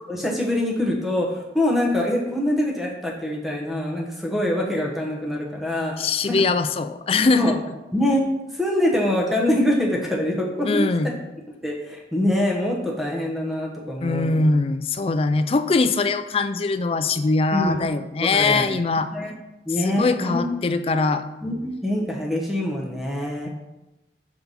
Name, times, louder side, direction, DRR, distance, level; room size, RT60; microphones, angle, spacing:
voice 1, 0.1-6.3 7.3-7.5 7.9-8.2 8.5-10.9 11.6-14.5 17.5-17.8 18.2-18.7 19.1-19.3 19.7-20.4 21.4-23.5, left 1 dB, ahead, -2 dB, 1.0 m, -24 dB
voice 2, 6.0-7.6 10.6-11.1 14.0-19.1 19.8-21.2, left 3 dB, 30° left, 10 dB, 0.3 m, -22 dB
5.3 x 4.5 x 5.5 m, 1.0 s
head